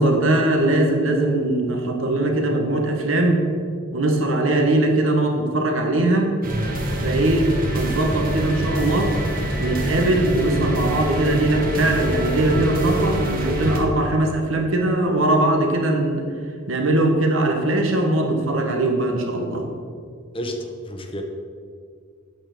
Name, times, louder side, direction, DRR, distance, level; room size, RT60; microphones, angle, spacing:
voice 1, 0.0-3.5 3.9-6.4 7.0-9.2 9.6-16.3 16.7-19.6, right 2 dB, 75° right, 3 dB, 1.5 m, -20 dB
sound 1, 6.4-13.8, right 1 dB, 45° right, 1.6 m, -25 dB
voice 2, 20.3-21.2, equal, 25° left, 4 dB, 1.1 m, -30 dB
8.9 x 6.4 x 6.8 m, 2.1 s
head